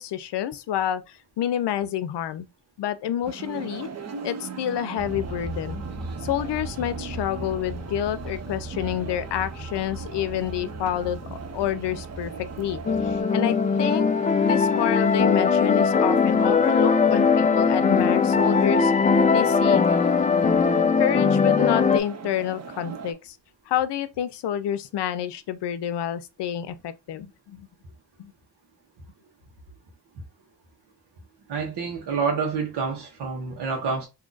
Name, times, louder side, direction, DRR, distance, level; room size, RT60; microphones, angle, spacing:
voice 1, 0.0-2.5 2.8-3.9 4.2-5.8 6.2-11.2 11.5-14.1 14.4-18.9 19.3-19.8 21.0-23.4 23.7-27.7 28.2-28.3, left 10 dB, 85° left, 0.6 m, -28 dB
sound 1, 3.2-23.1, right 5 dB, 40° right, 0.7 m, -40 dB
sound 2, 5.0-13.2, right 2 dB, ahead, 0.8 m, -37 dB
sound 3, 12.9-22.0, left 5 dB, 20° left, 0.3 m, -20 dB
voice 2, 31.5-34.1, right 5 dB, 85° right, 1.1 m, -28 dB
2.8 x 2.3 x 3.9 m
cardioid pair, 80°, 40 cm